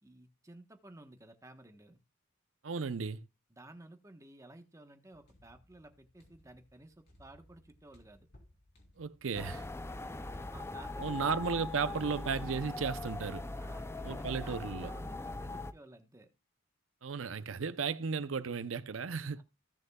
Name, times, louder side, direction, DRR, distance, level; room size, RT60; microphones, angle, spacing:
voice 1, 0.0-2.0 3.5-8.3 9.9-12.2 13.5-16.3 19.4-19.5, right 1 dB, 15° right, 1.1 m, -55 dB
voice 2, 2.6-3.2 9.0-9.6 11.0-13.5 14.0-14.9 17.0-19.4, right 5 dB, 75° right, 0.6 m, -35 dB
sound 1, 5.1-11.2 11.4-11.5, left 1 dB, 55° left, 3.7 m, -64 dB
sound 2, 9.3-15.7, left 2 dB, 15° left, 0.4 m, -41 dB
16.5 x 6.4 x 2.3 m
head